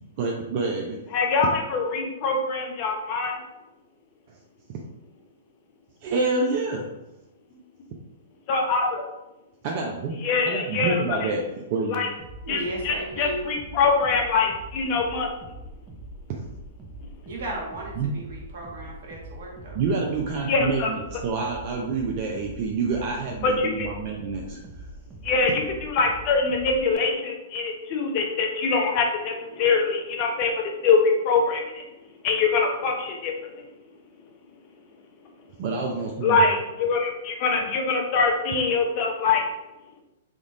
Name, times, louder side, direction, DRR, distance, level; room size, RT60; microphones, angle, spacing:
voice 1, 0.2-1.0 4.3-4.4 4.7-4.8 6.0-6.9 9.6-10.2 10.5-12.0 16.3-16.4 18.0-18.1 19.7-24.9 35.6-36.4, right 4 dB, 45° right, 0 dB, 0.5 m, -28 dB
voice 2, 1.1-3.4 8.5-8.9 10.2-11.3 11.9-12.1 12.5-15.3 20.4-20.9 23.4-23.9 25.2-31.8 32.2-33.7 36.2-39.4, left 4 dB, 40° left, 2 dB, 0.7 m, -24 dB
sound 1, 12.2-27.0, right 1 dB, 15° right, 0.8 m, -43 dB
voice 3, 12.4-13.4 17.2-19.8, right 1 dB, 65° right, -3 dB, 1.4 m, -35 dB
3.6 x 2.4 x 4.0 m, 0.97 s
hypercardioid pair, 120°, 0 cm